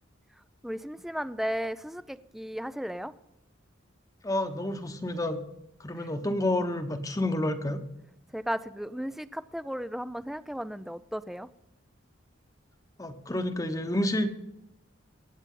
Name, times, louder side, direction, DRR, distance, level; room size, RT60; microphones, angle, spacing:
voice 1, 0.6-3.1 8.3-11.5, equal, ahead, 14 dB, 0.4 m, -35 dB
voice 2, 4.2-5.4 5.8-7.8 13.0-14.3, left 1 dB, 20° left, 8 dB, 1.0 m, -29 dB
24.0 x 8.8 x 3.8 m, 0.89 s
head